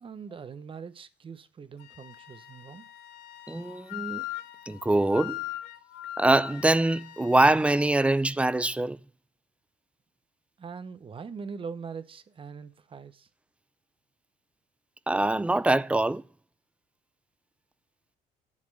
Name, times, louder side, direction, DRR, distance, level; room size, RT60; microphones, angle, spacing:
voice 1, 0.0-2.8 10.6-13.3, right 5 dB, 30° right, 0.9 m, -42 dB
Wind instrument woodwind instrument, 1.8-8.2, left 15 dB, 85° left, 1.0 m, -41 dB
voice 2, 3.5-4.2 4.7-5.4 6.2-9.0 15.1-16.2, right 2 dB, 5° right, 0.4 m, -24 dB
11.0 x 4.2 x 7.9 m
cardioid pair, 110°, 17 cm